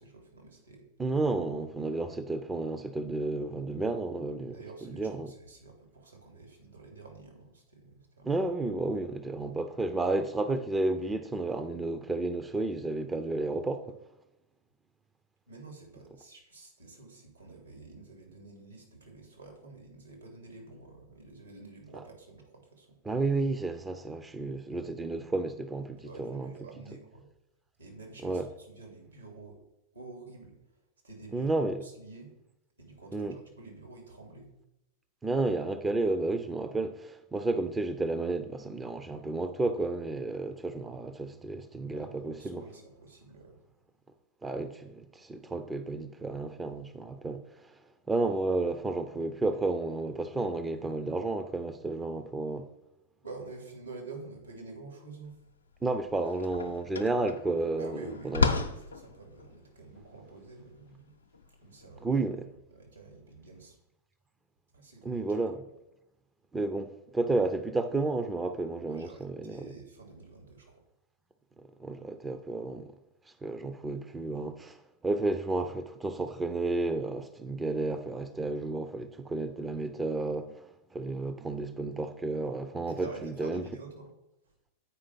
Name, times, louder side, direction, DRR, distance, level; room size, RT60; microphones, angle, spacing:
voice 1, 0.0-0.9 4.5-8.5 15.5-23.0 24.8-25.1 26.0-27.3 27.8-29.6 29.9-30.6 31.0-32.3 32.8-34.5 41.9-43.6 53.2-55.4 57.8-61.1 61.6-62.2 62.7-63.7 64.7-65.4 68.9-70.8 82.9-84.1 84.4-84.5, right 3 dB, 80° right, 2.6 m, -48 dB
voice 2, 1.0-4.6 4.8-5.3 8.2-13.9 23.0-26.5 28.2-28.5 31.3-31.8 33.1-33.4 35.2-42.6 44.4-47.7 48.1-52.7 55.8-58.5 62.0-62.4 65.0-65.6 66.5-69.7 71.6-72.9 73.4-83.6, right 2 dB, 10° right, 0.5 m, -32 dB
sound 1, 55.4-55.5 55.8-62.3, left 4 dB, 75° left, 0.7 m, -34 dB
8.3 x 5.0 x 5.8 m
figure-of-eight pair, 90°, 0 cm